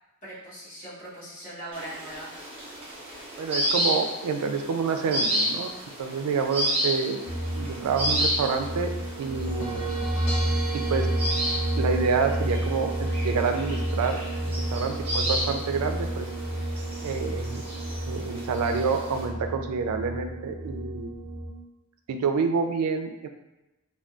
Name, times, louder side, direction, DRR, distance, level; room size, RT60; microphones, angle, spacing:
voice 1, 0.2-2.3, right 1 dB, 35° left, -10 dB, 1.3 m, -40 dB
sound 1, 1.7-19.2, equal, 25° right, 0.8 m, -32 dB
voice 2, 3.4-5.7 6.0-7.2 7.5-8.9 9.2-9.8 10.7-11.1 11.8-16.3 17.0-17.6 18.1-21.1 22.1-23.3, right 5 dB, 85° right, 6 dB, 0.3 m, -28 dB
sound 2, 7.2-21.5, right 1 dB, 75° left, 0.8 m, -30 dB
3.7 x 2.2 x 2.3 m, 0.99 s
head